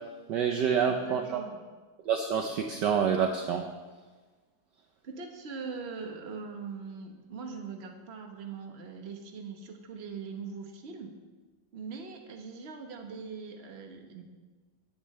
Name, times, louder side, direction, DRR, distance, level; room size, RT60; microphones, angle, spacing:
voice 1, 0.3-1.4 2.1-3.7, right 7 dB, 65° right, 4 dB, 1.2 m, -27 dB
voice 2, 0.9-1.6 5.0-11.2 11.7-14.2, right 5 dB, 35° right, 3 dB, 1.2 m, -41 dB
16.0 x 10.5 x 3.3 m, 1.3 s
omnidirectional pair, 2.4 m